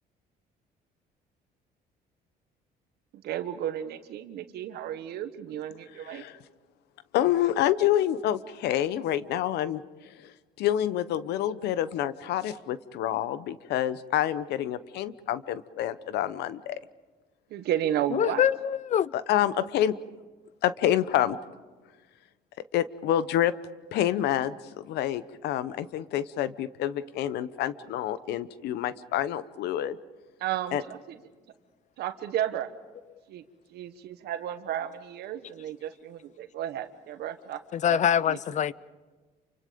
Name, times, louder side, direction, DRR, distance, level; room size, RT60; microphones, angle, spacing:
voice 1, 3.2-6.2 17.5-18.4 30.4-31.2 32.0-32.7 33.3-33.4 33.7-38.0 38.3-38.4, right 11 dB, 75° right, 10 dB, 1.5 m, -33 dB
voice 2, 6.0-6.4 7.1-10.3 10.6-16.8 19.1-20.0 20.6-21.4 22.7-23.5 23.9-30.0 30.7-30.8, left 11 dB, 80° left, 15 dB, 0.9 m, -28 dB
voice 3, 18.1-19.1 37.7-38.7, left 9 dB, 45° left, 21 dB, 0.6 m, -24 dB
28.5 x 25.0 x 5.2 m, 1.4 s
cardioid pair, 110°, 17 cm